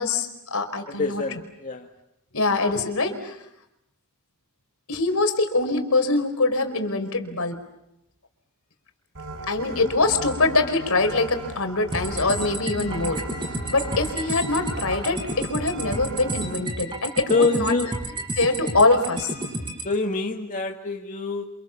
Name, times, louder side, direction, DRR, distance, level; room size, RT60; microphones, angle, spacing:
voice 1, 0.0-1.2 2.3-3.4 4.9-7.6 9.5-13.2 13.7-17.7 18.4-19.3, left 3 dB, 70° left, 7 dB, 4.8 m, -23 dB
voice 2, 1.0-1.9 17.3-17.9 19.8-21.4, left 3 dB, 35° left, 2 dB, 1.9 m, -25 dB
sound 1, 9.1-16.6, right 2 dB, 60° right, 5.7 m, -36 dB
sound 2, 11.9-19.9, right 1 dB, 25° right, 5.6 m, -31 dB
30.0 x 27.5 x 7.2 m, 0.82 s
head